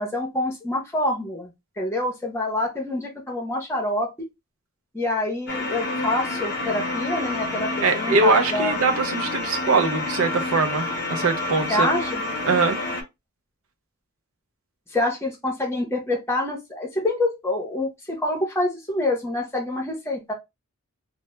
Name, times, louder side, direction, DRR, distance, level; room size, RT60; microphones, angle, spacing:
voice 1, 0.0-1.5 1.8-4.3 4.9-8.8 11.7-12.2 14.9-20.3, left 1 dB, 10° left, 0.7 m, -26 dB
sound 1, 5.5-13.0, left 2 dB, 50° left, 0.6 m, -28 dB
voice 2, 7.8-11.9 12.5-12.8, right 3 dB, 70° right, 0.5 m, -22 dB
2.2 x 2.1 x 2.9 m
head